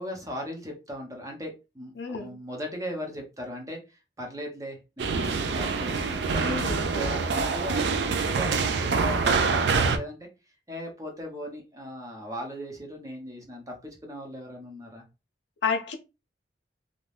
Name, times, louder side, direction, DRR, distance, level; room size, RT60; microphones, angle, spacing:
voice 1, 0.0-3.8 4.2-10.3 10.7-15.0, equal, 20° right, 0.8 m, -38 dB
voice 2, 2.0-2.4 6.4-7.2 15.6-16.0, left 5 dB, 75° left, 0.5 m, -31 dB
sound 1, 5.0-10.0, right 4 dB, 70° right, 0.4 m, -25 dB
2.6 x 2.2 x 3.2 m
head